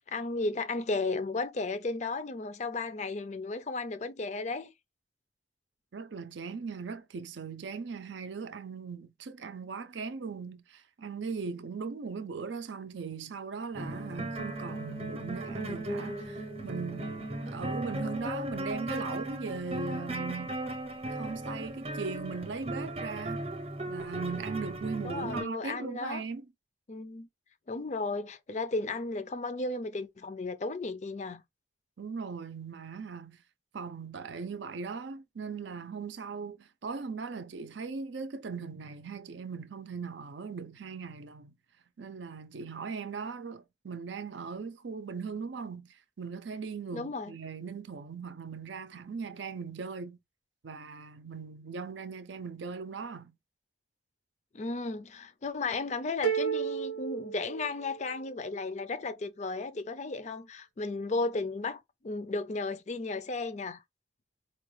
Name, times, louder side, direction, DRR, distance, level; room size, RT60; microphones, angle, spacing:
voice 1, 0.0-4.7 25.0-26.2 26.9-27.3 27.7-31.4 46.9-47.3 54.5-63.8, left 3 dB, 40° left, 0.4 m, -34 dB
voice 2, 5.9-20.6 21.1-23.4 23.9-26.5 32.0-33.4 33.7-41.5 42.0-50.2 50.6-53.3, right 5 dB, 75° right, 0.5 m, -39 dB
sound 1, 13.7-25.4, right 1 dB, 35° right, 0.7 m, -37 dB
sound 2, 56.2-58.2, right 7 dB, 85° left, 0.9 m, -32 dB
4.5 x 2.3 x 3.1 m
head